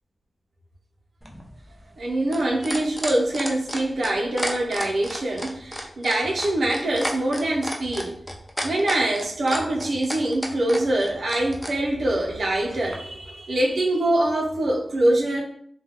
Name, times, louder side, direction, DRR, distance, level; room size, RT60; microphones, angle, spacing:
sound 1, 1.2-11.7 12.9-13.0, equal, 10° left, 0.5 m, -31 dB
voice 1, 2.0-8.2 8.6-15.4, right 1 dB, 80° right, -1 dB, 0.6 m, -24 dB
2.2 x 2.2 x 3.5 m, 0.64 s
cardioid pair, 65°, 0 cm